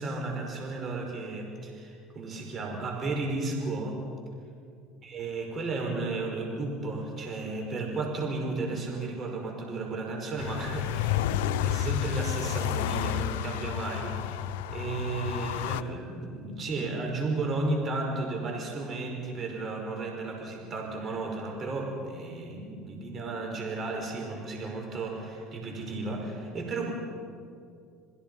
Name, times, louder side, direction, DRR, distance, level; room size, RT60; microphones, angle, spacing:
voice 1, 0.0-4.1 5.0-26.9, right 3 dB, 40° right, 1 dB, 5.1 m, -34 dB
sound 1, 10.4-15.8, left 11 dB, 85° left, 0.8 m, -30 dB
28.5 x 22.0 x 5.6 m, 2.4 s
supercardioid pair, 100°, 0 cm